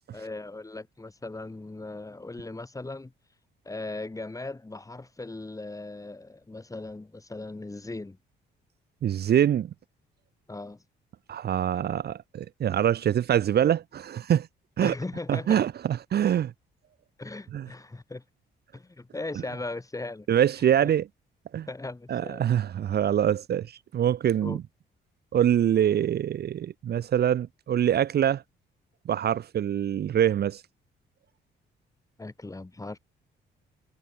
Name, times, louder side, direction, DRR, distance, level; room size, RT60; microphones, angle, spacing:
voice 1, 0.1-3.1 3.7-8.2 10.5-10.8 14.8-15.6 17.2-18.2 18.7-20.3 20.8-20.9 21.7-22.4 24.4-24.6 32.2-33.0, left 2 dB, 15° left, 3.6 m, -38 dB
voice 2, 9.0-9.7 11.3-14.5 14.8-14.9 15.3-16.5 17.5-17.7 20.3-21.1 21.5-21.7 22.1-23.7 23.9-24.6 25.3-28.4 29.1-30.6, right 10 dB, 55° right, 0.8 m, -24 dB
cardioid pair, 90°, 20 cm